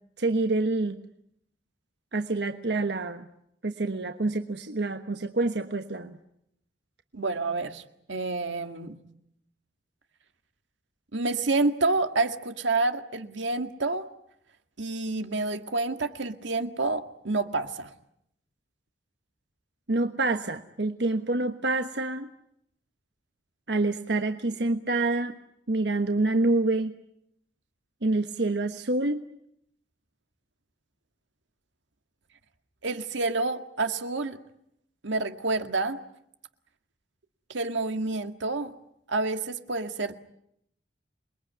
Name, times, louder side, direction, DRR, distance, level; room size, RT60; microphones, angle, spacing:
voice 1, 0.2-1.0 2.1-3.3 3.6-6.2 19.9-22.3 23.7-25.3 25.7-26.9 28.0-29.2, right 2 dB, 65° right, 7 dB, 1.2 m, -27 dB
voice 2, 7.1-7.8 8.1-9.0 11.1-14.1 14.8-17.9 32.8-34.4 35.0-36.0 37.5-38.7 39.1-40.2, right 3 dB, 90° right, 7 dB, 1.9 m, -28 dB
28.0 x 22.0 x 9.4 m, 0.76 s
head